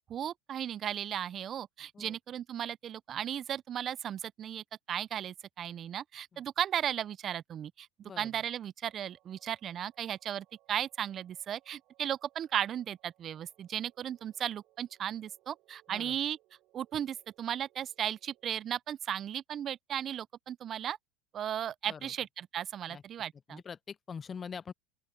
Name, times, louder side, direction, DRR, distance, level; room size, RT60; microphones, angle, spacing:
voice 1, 0.1-7.9 8.2-16.4 16.7-21.0 21.3-23.6, right 10 dB, 40° right, 0.4 m, -36 dB
voice 2, 8.0-8.4 15.9-16.2 21.9-22.1 22.9-23.0 23.5-24.7, left 6 dB, 25° left, 0.4 m, -44 dB
sound 1, 8.8-18.5, right 18 dB, 55° right, 3.6 m, -69 dB
open air
hypercardioid pair, 100°, 0 cm